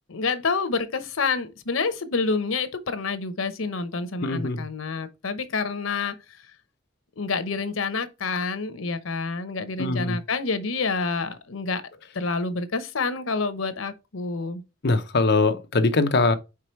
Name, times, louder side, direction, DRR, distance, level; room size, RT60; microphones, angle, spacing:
voice 1, 0.1-6.1 7.2-11.8 12.1-14.6, left 4 dB, 90° left, 0.8 m, -28 dB
voice 2, 4.2-4.7 9.8-10.2 14.8-16.4, left 3 dB, 55° left, 0.7 m, -22 dB
4.9 x 4.5 x 4.4 m
head